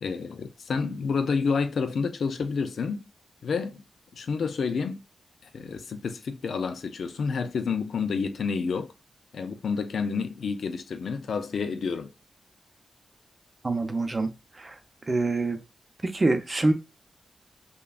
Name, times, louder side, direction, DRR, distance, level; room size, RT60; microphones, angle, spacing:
voice 1, 0.0-3.1 3.4-3.8 4.1-5.0 5.5-8.9 9.3-12.1, left 5 dB, 75° left, 0.5 m, -29 dB
voice 2, 13.6-14.3 14.6-14.8 15.1-15.6 16.0-16.7, right 2 dB, 30° right, 0.6 m, -25 dB
5.4 x 2.3 x 2.4 m
wide cardioid pair, 100°, 0 cm